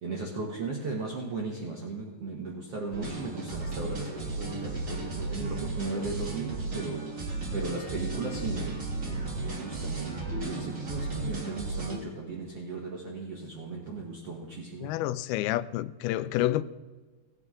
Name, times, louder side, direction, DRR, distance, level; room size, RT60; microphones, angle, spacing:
voice 1, 0.0-7.2 7.5-15.0, right 3 dB, 55° right, 1.8 m, -37 dB
sound 1, 2.9-12.0, right 3 dB, 35° right, 1.3 m, -34 dB
voice 2, 14.8-16.6, left 14 dB, 90° left, 2.5 m, -29 dB
18.0 x 9.5 x 3.7 m
omnidirectional pair, 4.3 m